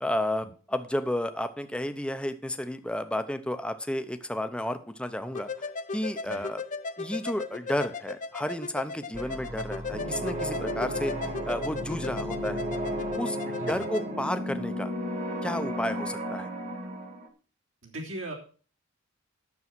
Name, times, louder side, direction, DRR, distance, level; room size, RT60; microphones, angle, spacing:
voice 1, 0.0-5.5 5.9-6.6 7.0-12.6 13.2-14.9 15.4-16.5, left 1 dB, 5° left, 9 dB, 0.7 m, -32 dB
sound 1, 5.3-14.1, left 4 dB, 40° left, 0.7 m, -37 dB
sound 2, 9.1-13.2, equal, 25° right, 1.4 m, -40 dB
sound 3, 9.9-17.3, equal, 40° right, 1.7 m, -34 dB
voice 2, 17.8-18.3, right 1 dB, 75° right, -1 dB, 3.1 m, -38 dB
9.8 x 7.1 x 6.1 m, 0.40 s
head